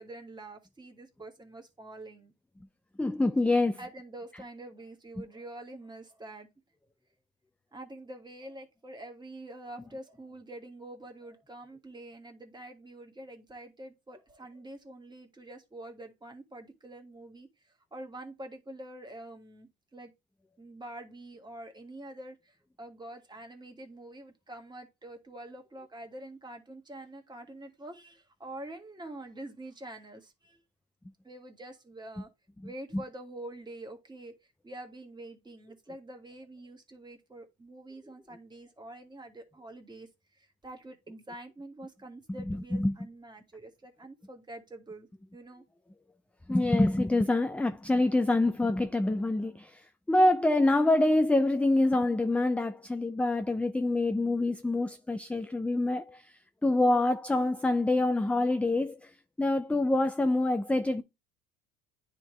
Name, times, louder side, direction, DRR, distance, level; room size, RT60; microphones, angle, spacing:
voice 1, 0.0-2.3 3.8-6.5 7.7-20.1 20.6-30.6 31.2-32.3 32.6-34.3 34.6-40.1 40.4-45.1 45.3-45.6, right 1 dB, 15° right, 1.8 m, -46 dB
voice 2, 3.0-3.8 42.5-42.9 46.5-49.8 50.1-56.3 56.6-59.1 59.4-61.0, left 2 dB, 5° left, 0.3 m, -26 dB
9.8 x 3.6 x 3.2 m
supercardioid pair, 100°, 30 cm